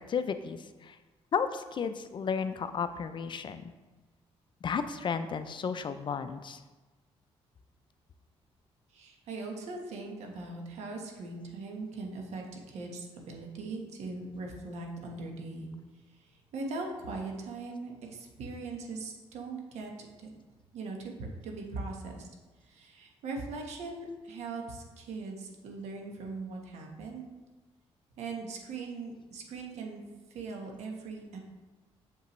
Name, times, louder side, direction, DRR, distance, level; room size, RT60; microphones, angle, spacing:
voice 1, 0.1-1.0 1.3-3.7 4.6-6.6, left 6 dB, 45° left, 11 dB, 0.5 m, -33 dB
voice 2, 8.9-15.7 16.1-20.3 20.7-22.3 22.6-27.3 28.2-30.0 30.3-31.4, right 3 dB, 80° right, 1 dB, 1.2 m, -40 dB
6.7 x 5.6 x 3.1 m, 1.2 s
cardioid pair, 85°, 11 cm